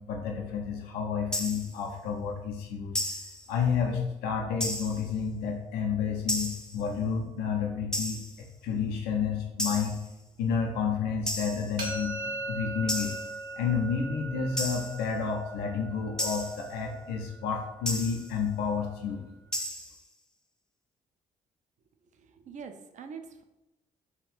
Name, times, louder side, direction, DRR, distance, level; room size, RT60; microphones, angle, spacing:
voice 1, 0.0-3.0 3.5-8.2 8.6-10.0 10.4-12.1 12.5-13.1 13.6-19.2, left 6 dB, 65° left, 1 dB, 0.5 m, -30 dB
sound 1, 1.3-1.8 2.9-3.5 4.6-5.1 6.3-6.8 7.9-8.4 9.6-10.1 11.3-11.8 12.9-13.4 14.6-15.0 16.2-16.7 17.9-18.3 19.5-20.0, equal, 5° left, 0.5 m, -33 dB
sound 2, 11.8-17.6, right 2 dB, 65° right, 0.9 m, -39 dB
voice 2, 22.4-23.4, right 6 dB, 45° right, 7 dB, 0.4 m, -43 dB
2.8 x 2.4 x 3.3 m, 0.99 s
hypercardioid pair, 45°, 18 cm